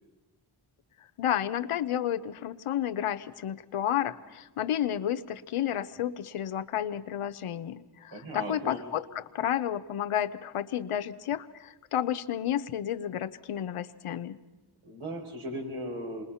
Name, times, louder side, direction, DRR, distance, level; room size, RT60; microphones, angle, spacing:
voice 1, 1.2-14.4, left 10 dB, 90° left, 11 dB, 0.9 m, -31 dB
voice 2, 8.1-8.8 14.8-16.2, equal, 70° right, 1 dB, 4.8 m, -37 dB
27.0 x 21.0 x 5.6 m, 1.1 s
cardioid pair, 50°, 50 cm